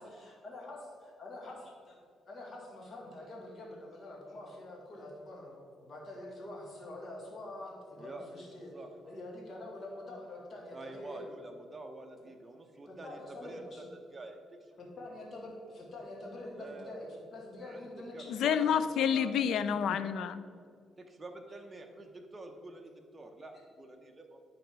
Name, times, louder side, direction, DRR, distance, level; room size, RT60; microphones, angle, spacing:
voice 1, 0.0-0.8 1.2-2.0 2.3-8.7 9.1-11.2 12.9-13.9 14.8-18.6 21.5-21.6, left 1 dB, 45° left, -2 dB, 2.1 m, -46 dB
voice 2, 8.0-8.4 8.7-9.2 10.7-13.6 14.1-14.6 16.5-17.0 17.6-17.9 18.1-18.7 19.1-19.3 19.7-20.0 21.0-24.4, right 2 dB, 25° right, 3 dB, 0.8 m, -48 dB
voice 3, 18.3-20.4, left 8 dB, 75° left, 13 dB, 0.4 m, -29 dB
10.0 x 4.2 x 4.7 m, 2.2 s
cardioid pair, 90°, 0 cm